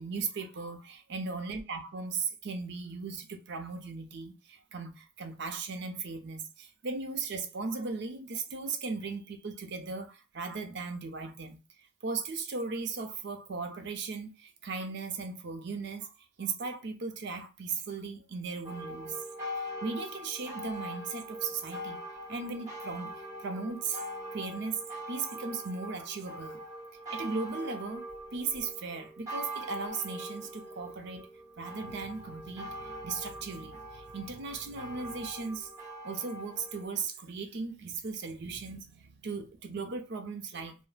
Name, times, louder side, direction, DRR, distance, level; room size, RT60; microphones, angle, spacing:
voice 1, 0.0-11.6 12.0-19.2 19.6-22.0 22.3-23.1 23.4-24.0 24.3-24.8 25.1-26.6 27.1-31.3 31.6-35.7 36.0-40.8, right 4 dB, 50° right, 0.5 m, -37 dB
sound 1, 18.6-36.9, equal, 15° right, 0.9 m, -42 dB
3.2 x 2.0 x 2.3 m
head